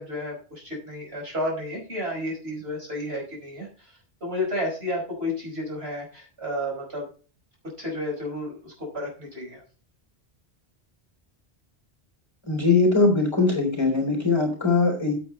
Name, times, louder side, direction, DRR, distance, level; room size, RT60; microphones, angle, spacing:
voice 1, 0.0-3.7 4.2-7.0 7.8-9.6, left 1 dB, 75° right, -3 dB, 5.6 m, -31 dB
voice 2, 12.4-15.1, left 3 dB, 25° left, 2 dB, 3.7 m, -21 dB
9.1 x 8.5 x 4.3 m, 0.38 s
omnidirectional pair, 1.1 m